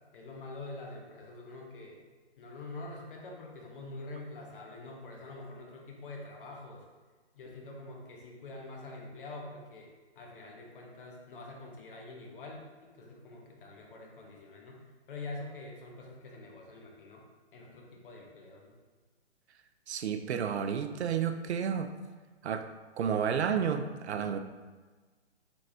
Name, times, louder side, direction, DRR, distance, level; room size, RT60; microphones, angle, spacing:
voice 1, 0.1-2.0 2.4-6.8 7.3-9.9 10.2-17.2 17.5-18.8, left 2 dB, 50° left, -1 dB, 1.0 m, -45 dB
voice 2, 19.9-21.9 22.4-22.7 23.0-24.4, right 7 dB, 70° right, 8 dB, 0.5 m, -31 dB
4.6 x 3.4 x 2.7 m, 1.3 s
hypercardioid pair, 140°, 35 cm